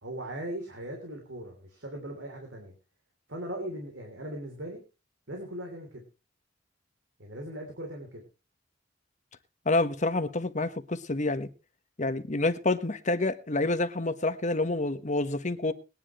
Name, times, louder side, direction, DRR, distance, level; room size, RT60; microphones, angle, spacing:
voice 1, 0.0-2.7 3.3-4.8 5.3-6.0 7.2-8.2, right 1 dB, 80° right, 3.2 m, -39 dB
voice 2, 9.6-11.5 12.0-15.7, left 2 dB, 40° left, 1.2 m, -28 dB
21.0 x 10.5 x 3.1 m
head